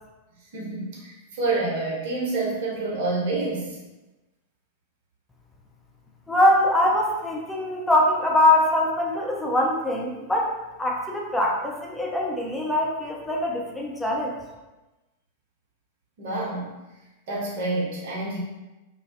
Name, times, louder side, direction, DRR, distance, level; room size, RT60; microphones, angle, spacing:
voice 1, 0.5-3.8 16.2-16.7 17.3-18.4, right 3 dB, 50° right, -5 dB, 0.7 m, -28 dB
voice 2, 6.3-14.4, left 1 dB, 5° left, -2 dB, 0.4 m, -23 dB
2.3 x 2.2 x 2.5 m, 1.1 s
figure-of-eight pair, 95°, 0 cm